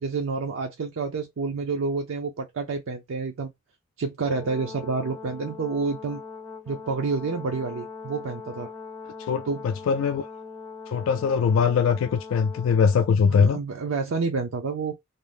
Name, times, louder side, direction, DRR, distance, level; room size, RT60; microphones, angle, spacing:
voice 1, 0.0-3.5 4.0-6.2 6.7-8.7 9.5-9.6 13.3-14.9, right 4 dB, 70° right, 0.5 m, -29 dB
Brass instrument, 4.2-13.2, left 5 dB, 10° left, 0.4 m, -41 dB
voice 2, 9.2-10.2 10.9-13.6, left 6 dB, 75° left, 0.3 m, -22 dB
2.5 x 2.0 x 3.2 m
head